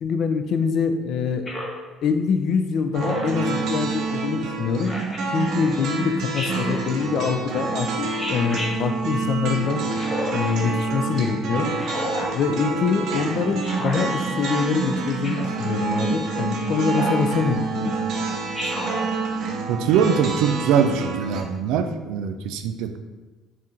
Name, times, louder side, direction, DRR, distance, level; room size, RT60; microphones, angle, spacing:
voice 1, 0.0-1.4 2.0-4.9 5.3-9.8 10.3-11.7 12.3-17.9, left 5 dB, 60° left, 7 dB, 0.4 m, -24 dB
Speech synthesizer, 1.5-1.8 3.0-3.4 4.8-5.2 6.3-6.8 8.2-8.7 9.9-10.5 11.8-12.3 13.6-14.0 15.2-15.6 16.9-17.3 18.5-19.0, equal, 25° left, 0.9 m, -30 dB
sound 1, 2.9-21.4, right 3 dB, 65° right, 0.7 m, -27 dB
voice 2, 19.7-23.0, right 7 dB, 85° right, 8 dB, 0.3 m, -22 dB
4.1 x 2.5 x 3.7 m, 1.2 s
cardioid pair, 115°, 0 cm